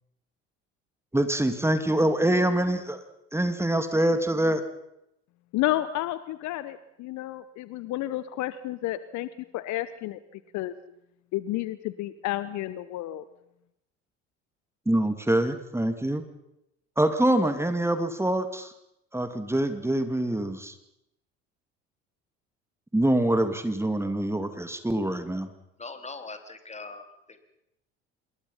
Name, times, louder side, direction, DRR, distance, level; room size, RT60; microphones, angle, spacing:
voice 1, 1.1-3.0 3.3-4.6 14.9-16.2 17.0-18.7 19.1-20.7 22.9-25.5, right 1 dB, 5° right, 9 dB, 2.5 m, -25 dB
voice 2, 5.5-10.7 11.3-13.2, left 15 dB, 55° left, 15 dB, 1.1 m, -31 dB
voice 3, 25.8-27.4, left 3 dB, 20° left, 8 dB, 3.6 m, -41 dB
26.5 x 22.0 x 5.7 m, 0.83 s
figure-of-eight pair, 60°, 34 cm